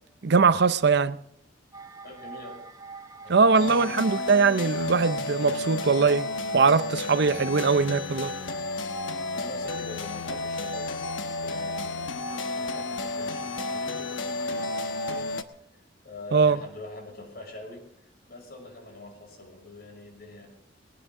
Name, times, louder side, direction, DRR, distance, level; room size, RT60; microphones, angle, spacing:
voice 1, 0.2-1.2 3.3-8.3 16.3-16.6, right 5 dB, 60° right, 0.6 m, -21 dB
sound 1, 1.7-15.2, right 4 dB, 20° right, 1.0 m, -43 dB
voice 2, 2.0-2.6 3.2-3.8 9.1-15.3 15.7-20.5, left 2 dB, 55° left, 6.1 m, -44 dB
sound 2, 3.5-15.4, left 3 dB, 90° left, 1.2 m, -32 dB
19.5 x 19.0 x 3.7 m
head